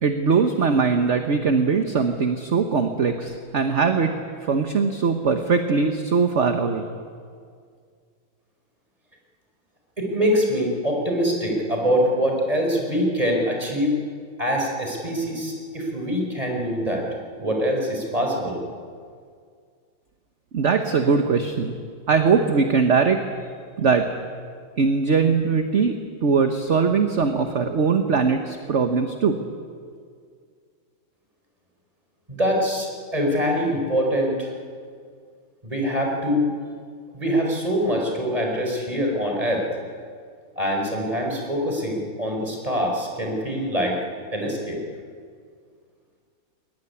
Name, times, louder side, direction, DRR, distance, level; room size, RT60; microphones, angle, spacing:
voice 1, 0.0-4.2 4.4-6.8 20.5-21.8 22.1-23.2 23.8-24.1 24.8-29.3, right 5 dB, 40° right, 6 dB, 1.3 m, -21 dB
voice 2, 10.0-14.0 14.4-17.1 17.4-18.6 32.3-34.5 35.6-36.5 37.1-39.6 40.5-44.0 44.3-44.8, equal, 15° right, 0 dB, 5.0 m, -24 dB
22.0 x 20.0 x 9.9 m, 2.1 s
omnidirectional pair, 2.2 m